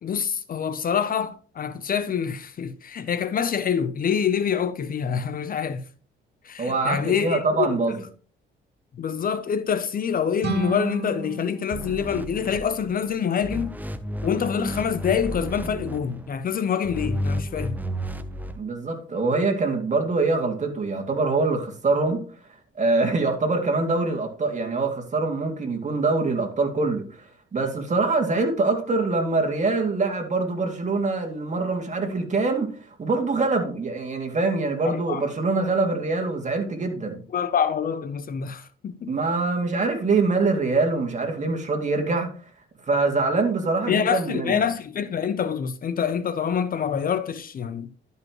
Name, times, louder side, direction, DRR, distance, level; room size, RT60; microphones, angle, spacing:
voice 1, 0.0-5.8 6.4-7.8 9.0-13.7 14.2-17.7 34.8-35.3 37.3-39.1 43.9-47.9, left 7 dB, 45° left, 0.6 m, -26 dB
voice 2, 6.6-7.9 18.6-22.2 22.8-37.2 39.1-42.3 42.9-44.6, right 3 dB, 35° right, 2.4 m, -24 dB
sound 1, 10.4-13.2, right 4 dB, 55° right, 1.4 m, -32 dB
sound 2, 11.7-13.1 13.4-16.3 16.8-18.6, equal, 10° right, 0.7 m, -32 dB
12.0 x 5.5 x 3.0 m
cardioid pair, 90°, 20 cm